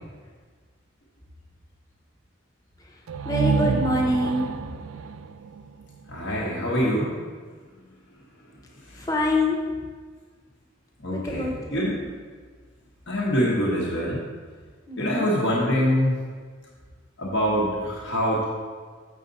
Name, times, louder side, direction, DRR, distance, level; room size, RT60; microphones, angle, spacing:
voice 1, 2.8-4.5 8.9-9.8 11.1-11.9 14.9-15.3, left 1 dB, 15° left, -1 dB, 1.0 m, -26 dB
sound 1, 3.1-6.8, right 5 dB, 85° right, 0.4 m, -28 dB
voice 2, 6.1-7.1 8.8-9.1 11.0-11.9 13.1-14.3 15.0-16.2 17.2-18.4, equal, 60° left, -5 dB, 1.3 m, -24 dB
7.4 x 6.6 x 4.1 m, 1.5 s
head